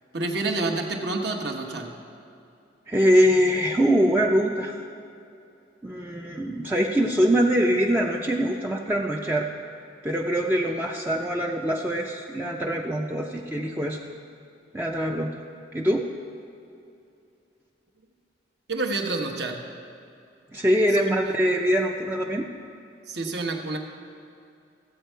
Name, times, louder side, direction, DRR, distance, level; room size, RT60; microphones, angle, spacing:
voice 1, 0.1-1.9 18.7-19.7 20.9-21.2 23.1-23.8, right 3 dB, 60° right, 2 dB, 1.1 m, -28 dB
voice 2, 2.9-4.8 5.8-9.5 10.0-14.0 14.7-15.3 15.7-16.1 20.5-22.5, equal, 10° right, 0 dB, 0.4 m, -23 dB
14.5 x 8.1 x 4.5 m, 2.7 s
head